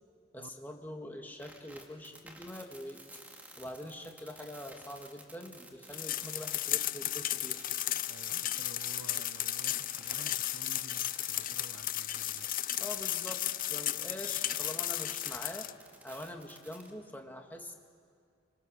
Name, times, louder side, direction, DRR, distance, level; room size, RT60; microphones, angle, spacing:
voice 1, 0.3-3.0 3.6-7.7 12.8-15.7 16.0-17.7, left 1 dB, 10° left, 2 dB, 2.0 m, -44 dB
sound 1, 1.4-17.0, right 1 dB, 10° right, 2.2 m, -52 dB
sound 2, 5.9-15.7, left 13 dB, 45° left, 0.5 m, -34 dB
voice 2, 8.1-12.5, right 3 dB, 65° right, 12 dB, 0.8 m, -52 dB
26.5 x 25.0 x 6.5 m, 2.1 s
head